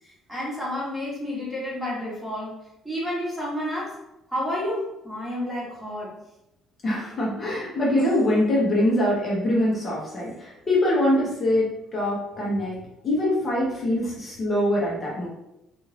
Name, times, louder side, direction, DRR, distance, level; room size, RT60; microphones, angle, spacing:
voice 1, 0.0-2.6 2.8-4.0 4.3-6.1, left 1 dB, 5° right, -6 dB, 1.2 m, -30 dB
voice 2, 6.8-12.8 13.0-15.3, left 1 dB, 40° left, -5 dB, 0.9 m, -23 dB
2.6 x 2.4 x 3.2 m, 0.89 s
cardioid pair, 100°, 0 cm